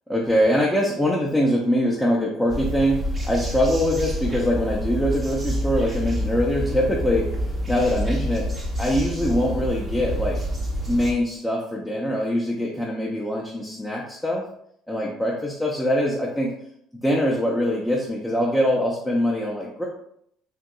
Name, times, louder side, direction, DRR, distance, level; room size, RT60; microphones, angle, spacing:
voice 1, 0.1-7.3 7.7-8.5 8.8-10.4 10.9-14.4 14.9-16.5 17.0-19.9, equal, 5° left, -4 dB, 0.6 m, -23 dB
sound 1, 2.5-11.1, equal, 25° right, 0.8 m, -28 dB
3.7 x 2.6 x 2.3 m, 0.70 s
hypercardioid pair, 60°, 0 cm